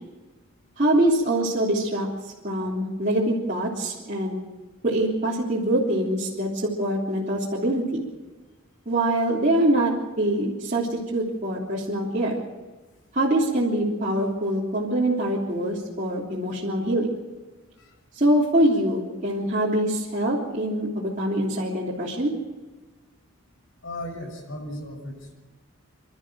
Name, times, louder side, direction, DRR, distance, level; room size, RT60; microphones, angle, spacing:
voice 1, 0.8-4.4 4.8-6.5 6.8-8.0 8.8-12.4 13.1-17.2 18.1-22.3, right 1 dB, 40° right, -6 dB, 3.3 m, -24 dB
voice 2, 23.8-25.3, left 1 dB, 70° left, 1 dB, 6.7 m, -36 dB
27.5 x 13.0 x 7.6 m, 1.2 s
head